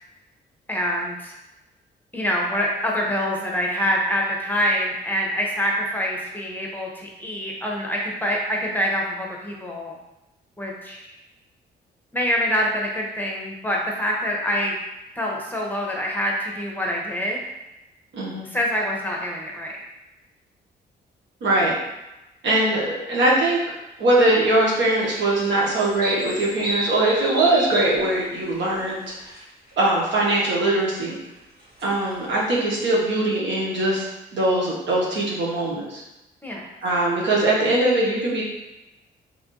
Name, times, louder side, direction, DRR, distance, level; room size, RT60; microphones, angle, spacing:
voice 1, 0.7-1.3 2.1-10.0 10.6-11.1 12.1-14.8 15.2-17.4 18.5-19.7 36.4-36.7, equal, 10° left, -2 dB, 0.9 m, -25 dB
voice 2, 18.1-18.5 21.4-21.7 22.4-23.6 24.0-29.0 29.8-31.2 31.8-36.0 36.8-38.4, right 2 dB, 75° right, -4 dB, 1.2 m, -21 dB
sound 1, 24.2-29.4 29.7-30.1 31.3-32.5, right 1 dB, 55° right, 1.2 m, -33 dB
3.5 x 2.5 x 3.7 m, 0.98 s
cardioid pair, 80°, 19 cm